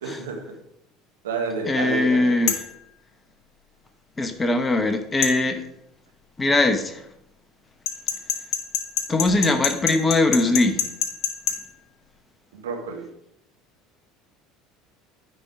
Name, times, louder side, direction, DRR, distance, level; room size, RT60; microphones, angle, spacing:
voice 1, 0.0-0.6 1.2-2.4 12.5-13.1, right 4 dB, 70° right, 1 dB, 1.5 m, -30 dB
voice 2, 1.7-2.5 4.2-5.6 6.4-7.0 9.1-10.8, left 2 dB, 20° left, 8 dB, 1.0 m, -21 dB
sound 1, 2.5-2.7 5.2-5.4 7.9-11.6, left 8 dB, 50° left, 1.2 m, -25 dB
9.7 x 4.5 x 4.7 m, 0.80 s
figure-of-eight pair, 65°, 0 cm